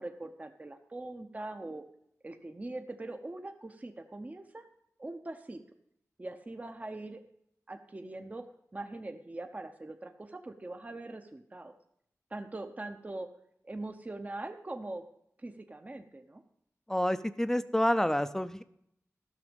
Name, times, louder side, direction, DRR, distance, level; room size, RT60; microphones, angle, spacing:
voice 1, 0.0-1.8 2.2-4.6 5.0-5.6 6.2-7.2 7.7-8.4 8.7-11.8 12.3-13.3 13.6-15.0 15.4-16.4, right 2 dB, 25° right, 6 dB, 0.7 m, -42 dB
voice 2, 16.9-18.6, left 1 dB, 10° left, 13 dB, 0.5 m, -28 dB
13.0 x 6.2 x 5.2 m, 0.75 s
wide cardioid pair, 80°, 6 cm